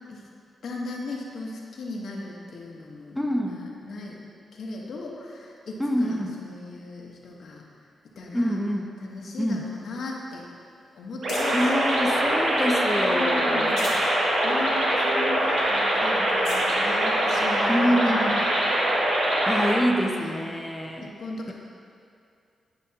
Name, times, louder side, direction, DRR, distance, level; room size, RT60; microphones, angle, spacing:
voice 1, 0.6-4.2 4.5-7.6 8.2-8.6 9.0-10.4 10.9-11.7 12.3-12.4 13.0-13.9 14.4-18.5 20.1-20.4 21.0-21.5, left 2 dB, 70° left, -2 dB, 1.1 m, -37 dB
voice 2, 3.2-3.6 5.8-6.4 8.3-8.9 9.4-9.7 11.5-13.8 17.7-18.4 19.5-21.1, equal, 5° left, 1 dB, 0.5 m, -26 dB
sound 1, 9.1-11.8 12.3-13.1 13.5-14.1 14.6-14.7 15.0-15.1 15.8-15.9 16.2-16.7 17.5-17.6 19.4-19.5, left 3 dB, 90° left, 1.1 m, -43 dB
sound 2, 11.2-19.8, right 1 dB, 70° right, 1.4 m, -23 dB
10.5 x 5.1 x 2.8 m, 2.4 s
cardioid pair, 90°, 0 cm